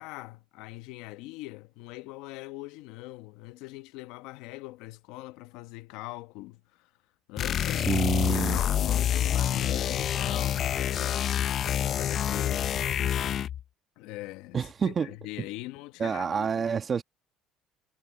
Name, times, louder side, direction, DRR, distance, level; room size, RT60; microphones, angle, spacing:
voice 1, 0.0-6.9 7.3-12.9 14.0-16.7, left 19 dB, 80° left, 1.0 m, -42 dB
sound 1, 7.4-13.6, left 10 dB, 50° left, 0.5 m, -27 dB
voice 2, 7.8-8.6 14.5-15.1 16.0-17.0, right 6 dB, 35° right, 1.3 m, -28 dB
supercardioid pair, 105°, 0 cm